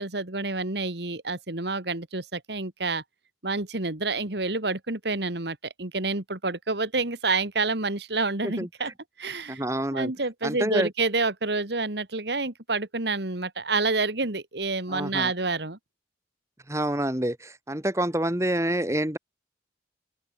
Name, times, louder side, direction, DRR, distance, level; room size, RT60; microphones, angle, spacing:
voice 1, 0.0-3.0 3.4-8.9 9.2-9.6 9.9-15.8, right 3 dB, 70° right, 2.4 m, -28 dB
voice 2, 9.5-10.1 10.4-10.9 14.9-15.3 16.7-19.2, right 1 dB, 15° right, 1.8 m, -27 dB
open air
head